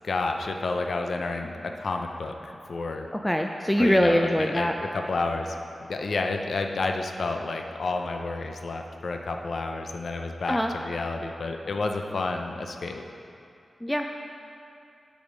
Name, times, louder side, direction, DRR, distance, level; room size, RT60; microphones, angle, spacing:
voice 1, 0.0-3.1 3.8-5.5 5.9-13.0, left 3 dB, 65° left, 4 dB, 0.5 m, -30 dB
voice 2, 3.1-4.7 10.5-10.7 13.8-14.1, equal, 5° left, 3 dB, 0.3 m, -23 dB
6.3 x 6.3 x 5.0 m, 2.6 s
wide cardioid pair, 105°, 0 cm